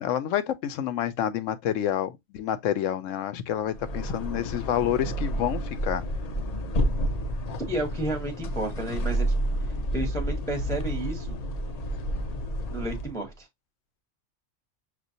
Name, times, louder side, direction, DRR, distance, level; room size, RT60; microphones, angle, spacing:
voice 1, 0.0-6.0, left 10 dB, 85° left, 1.0 m, -28 dB
sound 1, 3.6-13.2, equal, 55° left, 0.4 m, -30 dB
voice 2, 7.7-9.3 9.9-11.4 12.7-13.5, right 1 dB, 5° left, 0.7 m, -32 dB
6.0 x 2.4 x 2.6 m
omnidirectional pair, 1.3 m